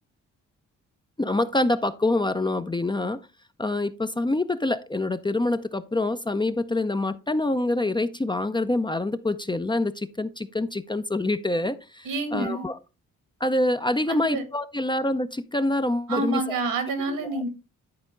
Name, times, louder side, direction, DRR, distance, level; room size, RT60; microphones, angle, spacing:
voice 1, 1.2-3.2 3.6-12.8 13.4-16.6 17.1-17.4, left 2 dB, 15° left, 0.5 m, -26 dB
voice 2, 12.0-12.7 14.1-14.4 16.1-17.5, right 2 dB, 85° right, 2.0 m, -28 dB
10.5 x 4.4 x 3.7 m
cardioid pair, 70°, 33 cm